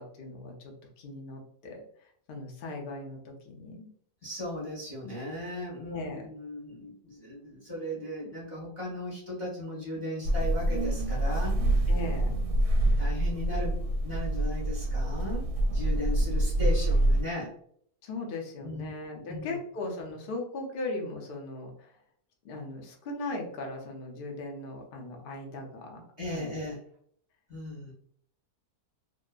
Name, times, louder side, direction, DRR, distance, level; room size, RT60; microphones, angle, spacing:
voice 1, 0.0-1.8 2.3-3.9 5.8-6.3 11.9-12.3 18.0-22.0 22.4-26.0 26.3-26.5, left 2 dB, 70° left, 0 dB, 0.5 m, -38 dB
voice 2, 4.2-11.6 13.0-17.5 18.6-18.9 19.3-19.6 26.2-26.8 27.5-27.9, left 1 dB, 20° left, -7 dB, 0.8 m, -37 dB
sound 1, 10.2-17.2, right 1 dB, 90° right, 1.1 m, -26 dB
2.7 x 2.3 x 2.3 m, 0.63 s
omnidirectional pair, 1.7 m